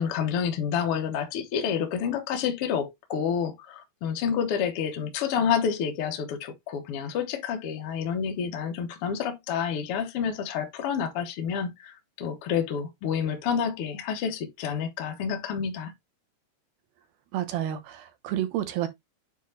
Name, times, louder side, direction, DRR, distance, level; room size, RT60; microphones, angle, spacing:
voice 1, 0.0-15.9, left 7 dB, 65° left, 1.4 m, -29 dB
voice 2, 17.3-18.9, right 11 dB, 85° right, 3.0 m, -30 dB
9.1 x 3.2 x 3.9 m
omnidirectional pair, 4.2 m